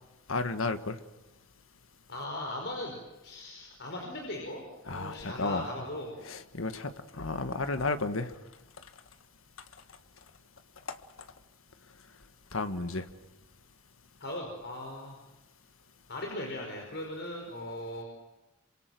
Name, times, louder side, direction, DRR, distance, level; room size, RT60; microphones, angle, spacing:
voice 1, 0.3-1.0 4.9-5.7 6.2-8.3 10.9-11.0 12.5-13.0, left 3 dB, 85° left, 1.7 m, -32 dB
voice 2, 2.1-2.9 3.2-6.2 14.2-15.2 16.1-18.0, left 1 dB, 60° left, 5.2 m, -38 dB
27.5 x 25.5 x 7.8 m
head